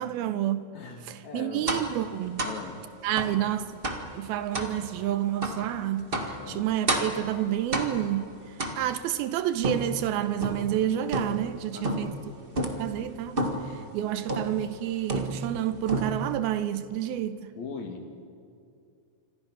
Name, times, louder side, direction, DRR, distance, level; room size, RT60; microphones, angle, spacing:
voice 1, 0.0-0.7 1.0-2.5 3.0-3.7 4.1-8.3 8.8-12.1 12.8-13.4 13.7-17.5, right 11 dB, 80° right, 2.6 m, -29 dB
voice 2, 0.7-1.7 2.4-2.8 3.1-3.2 6.4-6.6 11.7-12.1 17.5-18.2, left 5 dB, 55° left, 2.7 m, -40 dB
sound 1, 1.7-2.0 2.4-2.6 3.2-3.4 3.8-4.1 4.5-4.8 5.4-5.6 6.1-6.4 6.9-7.2 7.7-8.1 8.6-9.1 9.6-10.7 11.1-11.5 11.8-12.2 12.5-12.9 13.4-13.7 14.3-14.6 15.1-15.6 15.9-16.4, right 1 dB, 40° right, 0.7 m, -30 dB
26.5 x 26.0 x 6.0 m
omnidirectional pair, 4.6 m